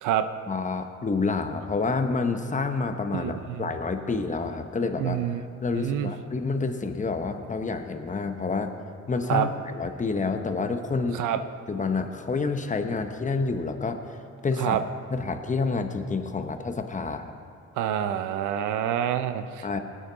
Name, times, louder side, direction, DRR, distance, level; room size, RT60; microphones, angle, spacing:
voice 1, 0.5-5.2 5.6-8.7 9.1-11.2 11.7-14.2 14.4-14.8 15.1-17.3 19.6-19.8, left 4 dB, 25° left, 6 dB, 1.0 m, -28 dB
voice 2, 3.1-3.7 5.0-5.4 5.7-6.1 9.3-9.5 11.1-11.4 14.6-14.8 17.8-19.7, right 11 dB, 85° right, 10 dB, 0.7 m, -27 dB
19.5 x 8.9 x 4.0 m, 2.2 s
cardioid pair, 90°, 30 cm